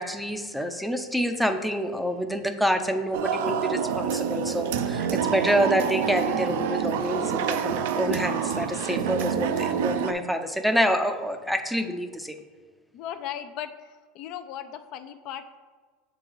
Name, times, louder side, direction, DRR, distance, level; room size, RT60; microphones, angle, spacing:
voice 1, 0.0-12.4, equal, ahead, 7 dB, 0.5 m, -27 dB
sound 1, 3.1-10.1, right 7 dB, 80° right, 0.4 m, -27 dB
voice 2, 12.9-15.6, left 10 dB, 55° left, 9 dB, 0.4 m, -37 dB
7.2 x 4.0 x 4.5 m, 1.4 s
supercardioid pair, 120°, 0 cm